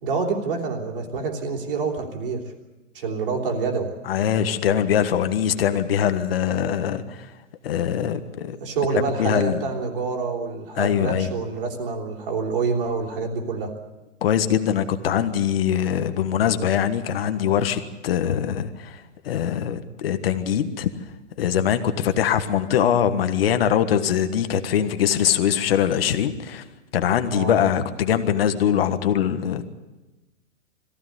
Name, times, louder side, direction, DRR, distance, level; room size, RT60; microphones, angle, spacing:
voice 1, 0.0-2.4 2.9-3.9 8.6-13.7 27.3-27.6, right 4 dB, 45° right, 3 dB, 3.4 m, -27 dB
voice 2, 4.0-7.3 7.6-8.6 8.9-9.6 10.8-11.3 14.2-20.9 21.4-26.6 26.9-29.7, left 9 dB, 50° left, 9 dB, 1.5 m, -22 dB
22.5 x 15.5 x 9.4 m, 1.1 s
hypercardioid pair, 175°, 39 cm